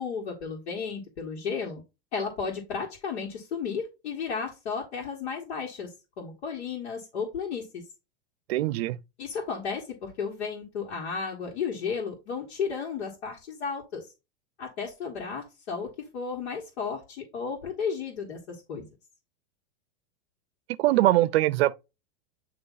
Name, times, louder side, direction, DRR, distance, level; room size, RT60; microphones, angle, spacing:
voice 1, 0.0-1.8 2.1-5.9 6.2-7.8 9.2-14.0 14.6-18.9, left 5 dB, 90° left, 1.8 m, -33 dB
voice 2, 8.5-9.0 20.8-21.8, right 16 dB, 70° right, 0.5 m, -22 dB
8.3 x 3.0 x 3.9 m
supercardioid pair, 170°, 32 cm